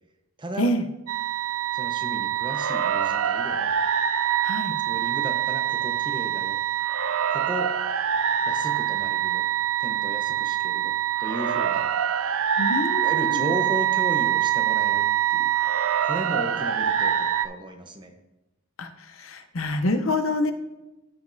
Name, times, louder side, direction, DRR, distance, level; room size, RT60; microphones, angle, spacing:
voice 1, 0.4-0.7 1.7-3.7 4.8-6.6 7.3-7.7 8.5-9.4 9.8-11.9 13.0-15.5 16.0-18.1, right 1 dB, 25° right, 5 dB, 0.9 m, -35 dB
sound 1, 1.1-17.5, right 10 dB, 85° right, 0.4 m, -25 dB
voice 2, 4.4-4.7 12.6-13.5 18.8-20.5, left 1 dB, 75° left, 8 dB, 0.8 m, -26 dB
14.0 x 5.2 x 2.7 m, 1.0 s
head